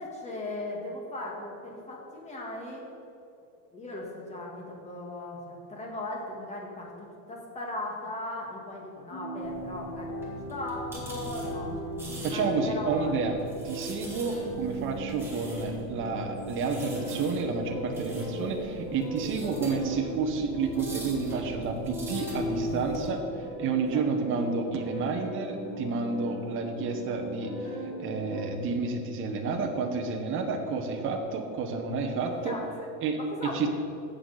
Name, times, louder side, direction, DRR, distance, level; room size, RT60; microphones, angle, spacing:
voice 1, 0.0-2.9 3.7-10.2 10.4-13.2 23.9-24.0 32.2-32.9 33.4-33.6, left 1 dB, 15° left, -1 dB, 1.8 m, -38 dB
sound 1, 9.1-28.5, equal, 35° left, 2.3 m, -38 dB
sound 2, 9.4-23.1, right 1 dB, 5° right, 1.9 m, -42 dB
voice 2, 12.2-13.3 13.6-23.2 23.6-27.7 28.0-32.6 33.0-33.2 33.5-33.7, right 4 dB, 25° right, 3 dB, 1.0 m, -30 dB
16.0 x 6.5 x 4.1 m, 2.8 s
supercardioid pair, 150°, 45 cm